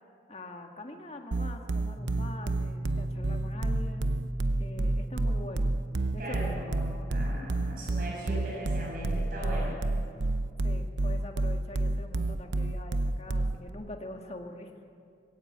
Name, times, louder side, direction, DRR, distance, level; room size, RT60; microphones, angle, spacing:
voice 1, 0.3-4.1 4.6-5.8 6.1-6.4 10.6-14.7, left 1 dB, 35° left, 3 dB, 1.8 m, -44 dB
sound 1, 1.3-13.7, right 2 dB, 80° right, 0.7 m, -29 dB
sound 2, 2.0-12.5, right 1 dB, 5° right, 7.6 m, -41 dB
voice 2, 6.2-9.8, equal, 50° right, -5 dB, 7.4 m, -38 dB
21.5 x 16.5 x 8.2 m, 2.3 s
head